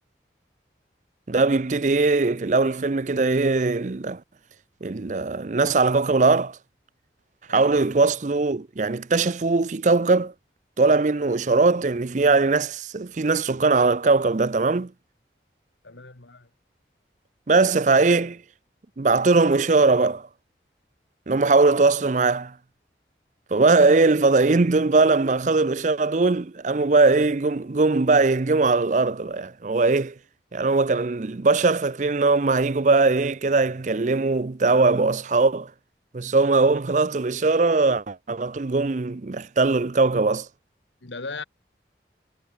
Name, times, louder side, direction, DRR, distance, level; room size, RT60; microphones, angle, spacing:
voice 1, 1.3-4.2 4.8-6.6 7.5-10.3 10.8-14.9 17.5-18.4 19.0-20.3 21.3-22.5 23.5-30.1 30.5-35.7 36.1-40.5, right 3 dB, 40° right, 0.5 m, -20 dB
voice 2, 15.8-16.5 41.0-41.4, left 4 dB, 85° left, 2.1 m, -37 dB
head